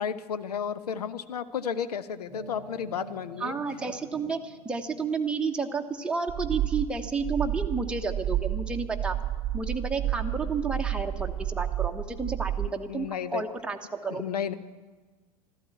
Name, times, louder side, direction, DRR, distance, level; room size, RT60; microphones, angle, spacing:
voice 1, 0.0-3.5 12.9-13.4 14.1-14.5, left 7 dB, 70° left, 13 dB, 0.9 m, -32 dB
sound 1, 2.3-5.8, right 2 dB, 90° left, 6.4 m, -48 dB
voice 2, 3.4-9.2 9.5-14.2, right 4 dB, 5° right, 3 dB, 1.1 m, -31 dB
sound 2, 6.3-12.7, right 13 dB, 25° right, 0.4 m, -31 dB
13.5 x 13.0 x 8.3 m, 1.4 s
figure-of-eight pair, 85°, 21 cm